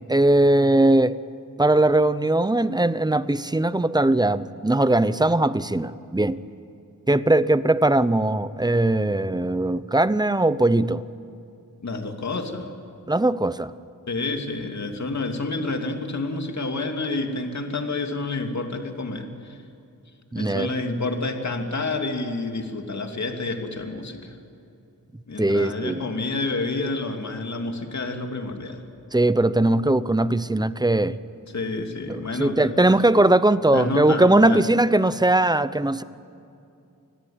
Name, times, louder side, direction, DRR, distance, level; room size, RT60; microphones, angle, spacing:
voice 1, 0.1-1.2 1.6-6.4 7.1-11.0 13.1-13.7 20.3-20.7 25.4-26.0 29.1-31.2 32.1-36.0, right 2 dB, 10° right, 15 dB, 0.7 m, -20 dB
voice 2, 11.8-12.7 14.1-19.6 20.4-24.4 25.3-28.8 31.5-32.8 33.7-34.7, left 3 dB, 55° left, 4 dB, 2.8 m, -29 dB
29.0 x 20.5 x 8.9 m, 2.6 s
wide cardioid pair, 100°, 33 cm